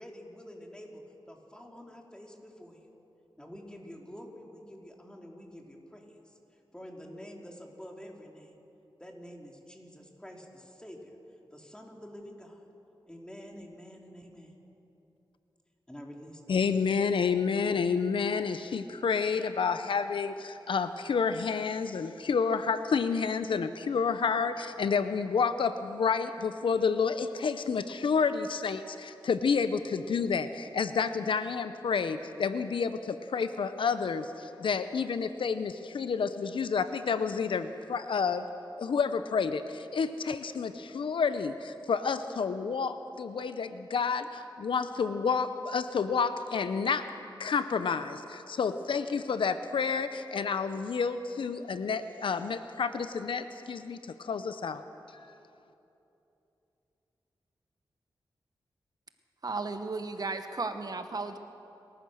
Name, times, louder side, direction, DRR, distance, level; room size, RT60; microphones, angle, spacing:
voice 1, 0.0-2.9 3.4-6.4 6.7-8.5 9.0-11.2 11.5-12.6 13.1-14.5 15.9-16.6, equal, 10° left, 0 dB, 3.4 m, -48 dB
voice 2, 16.5-38.5 38.8-47.1 47.4-54.8, left 5 dB, 75° left, 11 dB, 0.8 m, -29 dB
voice 3, 59.4-61.4, right 3 dB, 50° right, 8 dB, 1.2 m, -34 dB
28.0 x 14.0 x 6.5 m, 2.9 s
cardioid pair, 65°, 9 cm